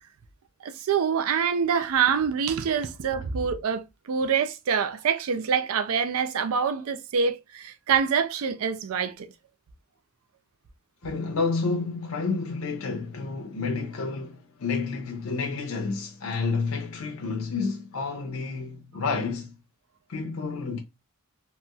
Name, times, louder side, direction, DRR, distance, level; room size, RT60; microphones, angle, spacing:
voice 1, 0.6-9.3, right 6 dB, 70° right, 0.4 m, -25 dB
voice 2, 11.0-19.5 20.1-20.8, left 4 dB, 65° left, 0.6 m, -30 dB
2.9 x 2.9 x 2.2 m
head